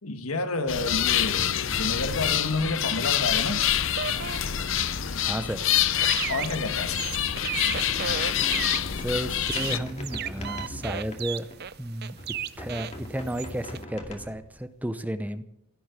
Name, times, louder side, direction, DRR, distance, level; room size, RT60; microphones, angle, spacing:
voice 1, 0.0-3.6 6.3-7.1, left 2 dB, 85° left, 1.7 m, -30 dB
sound 1, 0.7-9.8, left 10 dB, 60° left, 0.7 m, -26 dB
sound 2, 3.9-13.8, right 8 dB, 45° right, 0.5 m, -36 dB
voice 2, 5.2-5.7 9.0-11.5 11.8-12.2 12.6-15.4, right 1 dB, 5° right, 0.7 m, -32 dB
sound 3, 7.7-11.8 12.2-14.6, left 1 dB, 30° left, 2.3 m, -41 dB
16.5 x 7.8 x 9.7 m
head